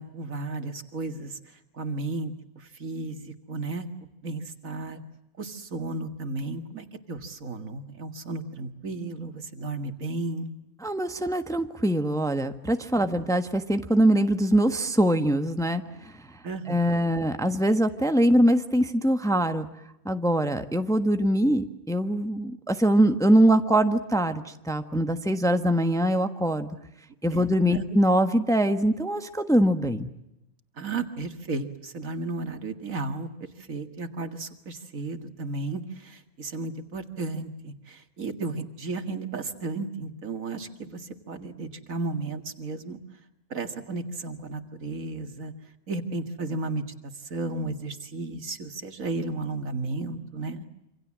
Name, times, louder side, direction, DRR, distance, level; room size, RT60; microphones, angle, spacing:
voice 1, 0.0-3.9 4.2-5.0 5.4-10.5 16.4-17.2 27.3-27.8 30.8-43.0 43.5-45.5 45.9-46.8 47.1-50.6, right 3 dB, 65° right, 8 dB, 2.4 m, -34 dB
voice 2, 10.8-16.4 16.7-19.7 20.0-26.7 27.2-30.1, right 1 dB, ahead, 8 dB, 1.3 m, -23 dB
27.5 x 26.5 x 7.5 m, 0.87 s
omnidirectional pair, 1.5 m